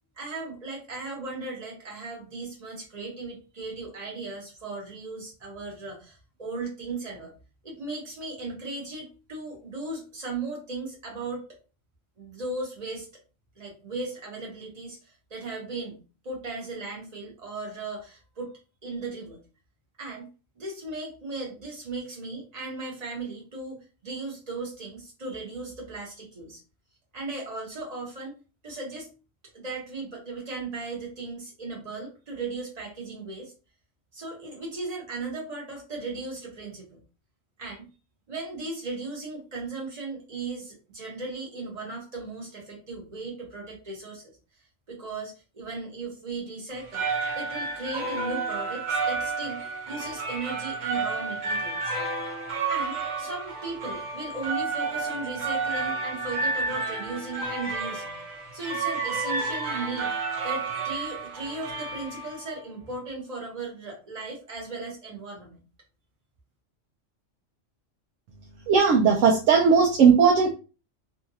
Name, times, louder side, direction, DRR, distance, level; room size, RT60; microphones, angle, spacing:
voice 1, 0.2-7.3 7.6-11.4 12.2-13.1 13.6-19.4 20.0-20.3 20.6-26.6 27.1-28.4 28.6-29.1 29.5-33.5 34.1-37.0 37.6-37.9 38.3-44.4 44.9-47.1 47.3-51.9 52.7-58.2 58.5-60.1 60.4-65.6, right 3 dB, 35° right, -2 dB, 1.2 m, -37 dB
sound 1, 46.7-62.6, right 4 dB, 50° right, 0.6 m, -31 dB
voice 2, 68.7-70.5, right 6 dB, 80° right, 0 dB, 1.0 m, -18 dB
2.8 x 2.5 x 2.7 m, 0.33 s
omnidirectional pair, 1.3 m